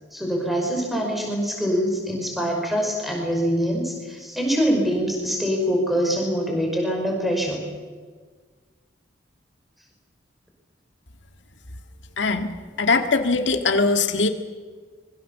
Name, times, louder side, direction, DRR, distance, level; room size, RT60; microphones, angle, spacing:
voice 1, 0.1-7.6, equal, ahead, 0 dB, 5.5 m, -24 dB
voice 2, 12.2-12.5 12.8-14.3, left 3 dB, 80° left, 6 dB, 1.9 m, -21 dB
25.5 x 22.5 x 7.3 m, 1.5 s
head